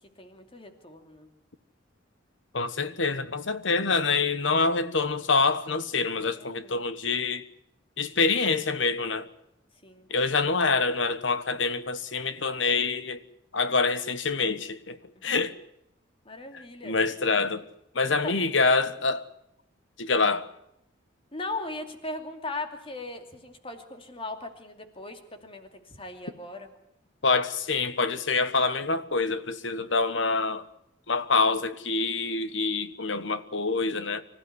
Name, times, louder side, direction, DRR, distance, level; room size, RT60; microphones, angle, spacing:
voice 1, 0.2-1.3 6.4-6.9 9.8-10.3 15.2-15.4 16.2-16.9 18.1-18.4 21.3-26.7, left 2 dB, 30° left, 2.6 m, -39 dB
voice 2, 2.5-7.4 8.0-9.3 10.1-13.2 13.5-15.0 15.2-15.5 16.5-17.6 17.9-19.2 20.0-20.5 27.2-30.6 31.1-34.2, left 4 dB, 75° left, 1.3 m, -26 dB
25.5 x 15.5 x 9.6 m
head